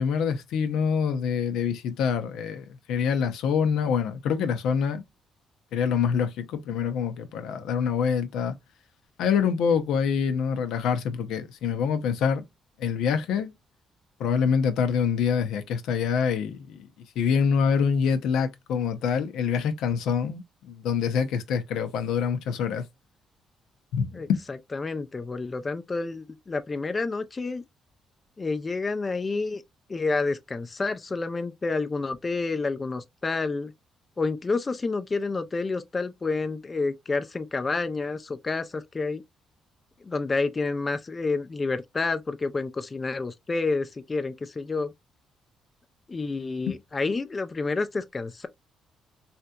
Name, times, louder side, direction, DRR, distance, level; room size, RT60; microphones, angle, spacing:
voice 1, 0.0-5.0 5.7-8.6 9.2-12.4 12.8-13.5 14.2-16.9 17.2-22.9 23.9-24.4 46.7-46.8, left 6 dB, 85° left, 0.6 m, -25 dB
voice 2, 24.1-27.6 28.4-29.6 29.9-33.7 34.2-39.2 40.0-44.9 46.1-48.5, left 3 dB, 30° left, 0.4 m, -29 dB
3.2 x 2.8 x 2.2 m
cardioid pair, 90°, 0 cm